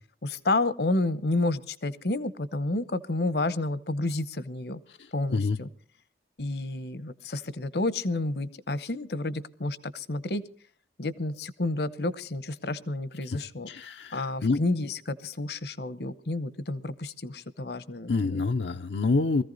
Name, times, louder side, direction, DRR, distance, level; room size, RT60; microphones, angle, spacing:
voice 1, 0.2-4.8 5.1-5.7 6.4-10.4 11.0-13.7 14.1-18.4, left 2 dB, 65° left, 0.9 m, -30 dB
voice 2, 13.7-14.6 18.1-19.4, left 3 dB, 90° left, 0.7 m, -27 dB
21.5 x 15.0 x 4.0 m
head